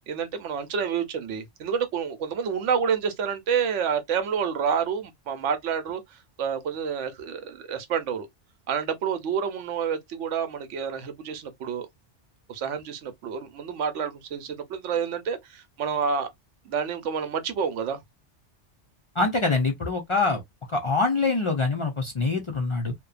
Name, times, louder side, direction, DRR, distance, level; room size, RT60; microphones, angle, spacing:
voice 1, 0.1-8.3 8.7-11.9 12.5-16.3 16.6-18.0, right 6 dB, 80° right, 1.0 m, -28 dB
voice 2, 19.2-20.4 20.7-22.9, left 3 dB, 55° left, 0.3 m, -24 dB
2.7 x 2.1 x 2.3 m
omnidirectional pair, 1.2 m